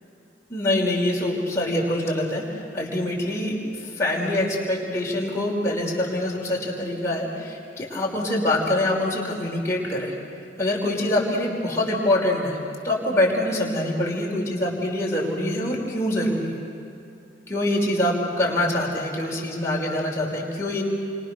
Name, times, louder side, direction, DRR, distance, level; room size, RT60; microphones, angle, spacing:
voice 1, 0.5-2.4 2.7-3.6 3.8-10.1 10.6-12.6 12.8-16.6 17.5-20.8, left 1 dB, 15° left, -4 dB, 5.4 m, -24 dB
29.5 x 25.5 x 6.9 m, 2.7 s
head